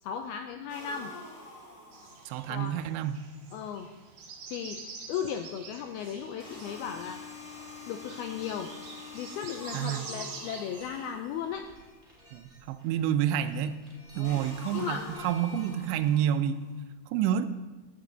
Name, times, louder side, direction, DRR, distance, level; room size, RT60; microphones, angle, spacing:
voice 1, 0.0-1.1 2.5-2.8 3.5-3.9 4.5-4.8 5.1-7.2 7.9-8.7 9.1-11.7 14.1-14.4 14.7-15.0, left 8 dB, 85° left, 5 dB, 2.2 m, -36 dB
sound 1, 0.7-2.7 6.4-11.7 14.2-16.6, left 3 dB, 30° left, 4.2 m, -46 dB
sound 2, 1.9-11.1, right 4 dB, 55° right, 2.4 m, -47 dB
voice 2, 2.3-3.2 9.7-10.1 12.3-13.8 14.2-16.6 17.1-17.5, right 10 dB, 85° right, 11 dB, 3.0 m, -29 dB
sound 3, 10.8-16.3, equal, 10° right, 3.2 m, -55 dB
16.0 x 10.5 x 3.9 m, 1.2 s
omnidirectional pair, 5.1 m